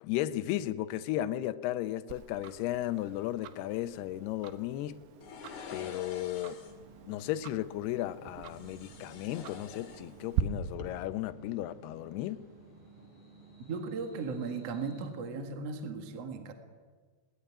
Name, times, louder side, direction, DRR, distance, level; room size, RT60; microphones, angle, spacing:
voice 1, 0.0-5.0 5.7-6.6 7.1-12.4, left 14 dB, 80° left, 2.8 m, -34 dB
Tick-tock, 2.1-10.4, right 11 dB, 85° right, 3.3 m, -42 dB
sound 1, 5.2-6.9 8.4-10.4 10.7-10.8, left 5 dB, 50° left, 3.3 m, -47 dB
sound 2, 6.6-15.1, right 3 dB, 65° right, 10.0 m, -55 dB
voice 2, 13.7-16.5, right 4 dB, 45° right, 2.4 m, -37 dB
21.0 x 18.5 x 9.9 m
omnidirectional pair, 4.8 m